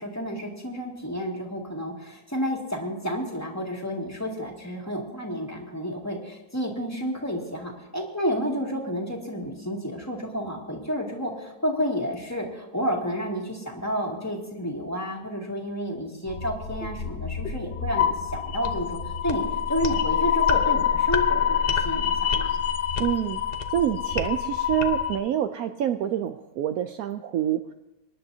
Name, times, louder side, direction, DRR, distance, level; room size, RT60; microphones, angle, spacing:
voice 1, 0.0-22.6, equal, 10° left, -1 dB, 2.2 m, -30 dB
sound 1, 16.3-25.2, left 7 dB, 45° left, 1.0 m, -26 dB
voice 2, 23.0-23.4 23.7-27.7, right 11 dB, 70° right, 7 dB, 1.0 m, -27 dB
25.5 x 10.5 x 2.8 m, 0.95 s
omnidirectional pair, 1.7 m